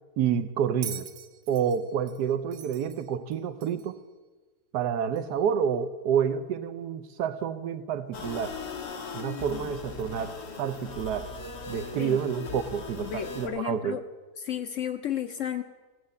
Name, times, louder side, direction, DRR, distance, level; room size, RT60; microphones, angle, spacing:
voice 1, 0.2-1.1 1.5-4.0 4.7-8.6 9.1-11.3 11.7-14.0, right 8 dB, 85° right, 11 dB, 1.3 m, -29 dB
Bell, 0.8-4.0 5.2-5.3, right 9 dB, 60° right, 0.8 m, -43 dB
sound 1, 8.1-13.5, left 5 dB, 90° left, 1.8 m, -39 dB
voice 2, 13.0-14.0 14.4-15.6, left 10 dB, 65° left, 8 dB, 0.8 m, -33 dB
16.0 x 6.4 x 6.9 m, 1.3 s
omnidirectional pair, 1.7 m